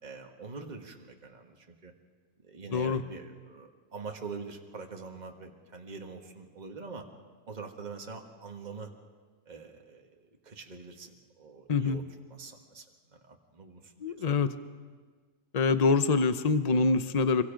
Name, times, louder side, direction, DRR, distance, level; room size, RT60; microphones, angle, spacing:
voice 1, 0.0-1.9 2.4-7.0 7.5-8.9 9.4-12.0 12.3-14.4, right 4 dB, 30° right, 2 dB, 1.7 m, -44 dB
voice 2, 2.7-3.0 11.7-12.0 14.0-14.5 15.5-17.4, left 4 dB, 35° left, 11 dB, 0.8 m, -25 dB
25.5 x 24.0 x 5.2 m, 1.5 s
omnidirectional pair, 1.5 m